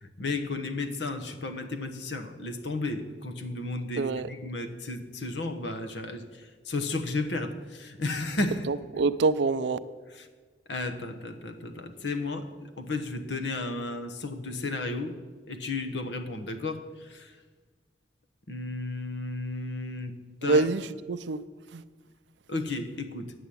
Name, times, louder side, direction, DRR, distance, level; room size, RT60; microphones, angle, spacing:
voice 1, 0.0-8.7 10.1-10.3 10.7-15.2 15.5-17.3 18.5-20.7 22.5-23.3, left 2 dB, 80° left, 7 dB, 1.1 m, -33 dB
voice 2, 8.7-9.8 20.4-21.4 21.7-21.8, right 3 dB, 80° right, 14 dB, 0.5 m, -26 dB
9.3 x 7.8 x 8.6 m, 1.5 s
head